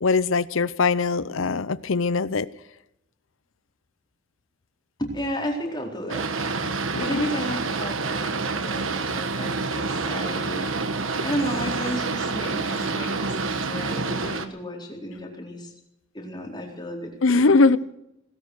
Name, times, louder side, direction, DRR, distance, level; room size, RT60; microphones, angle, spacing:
voice 1, 0.0-2.5 6.9-7.1 17.2-17.8, left 4 dB, 75° left, 17 dB, 0.7 m, -21 dB
voice 2, 5.0-6.6 7.0-10.8 11.2-15.7 16.1-17.8, equal, 20° left, 0 dB, 4.2 m, -33 dB
Boat Water vehicle, 6.1-14.5, right 3 dB, 75° right, 1.4 m, -28 dB
18.0 x 16.5 x 4.8 m, 0.84 s
head